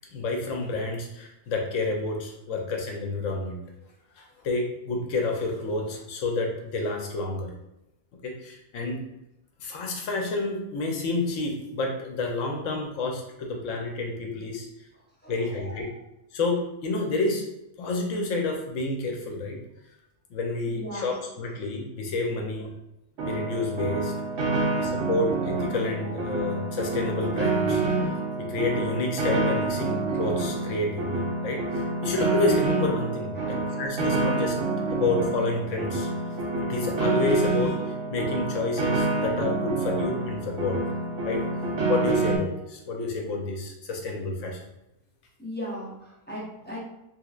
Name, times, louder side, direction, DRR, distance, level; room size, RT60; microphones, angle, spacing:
voice 1, 0.1-3.6 4.2-7.5 8.2-9.0 9.6-14.7 15.3-15.9 16.3-17.4 17.8-19.6 20.3-22.7 23.2-24.1 24.8-27.8 28.4-34.6 34.9-36.1 36.6-40.8 41.2-41.4 41.9-44.6, left 3 dB, 65° left, 1 dB, 1.0 m, -29 dB
voice 2, 15.2-16.0 20.7-21.1 24.5-25.2 26.0-26.1 33.3-33.8 45.4-46.8, equal, 15° left, -7 dB, 0.4 m, -39 dB
Piano, 23.2-42.4, right 3 dB, 65° right, 0.8 m, -27 dB
3.2 x 3.0 x 2.4 m, 0.87 s
omnidirectional pair, 1.5 m